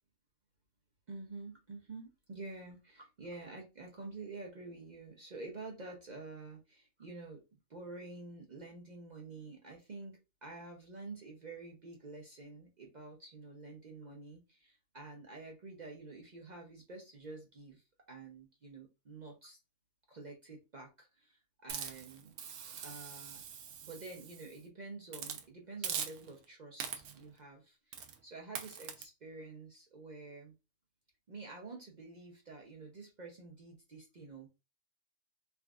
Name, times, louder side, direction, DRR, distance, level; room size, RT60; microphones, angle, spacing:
voice 1, 1.1-7.4 7.7-19.6 20.1-22.4 22.8-23.4 23.8-27.8 28.2-30.5 31.3-34.5, right 3 dB, 45° right, 0 dB, 0.6 m, -49 dB
Hiss, 21.7-24.6 25.1-25.4 25.8-26.4 26.8-27.3 27.9-28.2 28.6-29.0, right 7 dB, 70° right, 0.9 m, -42 dB
3.4 x 2.5 x 2.3 m, 0.27 s
omnidirectional pair, 1.3 m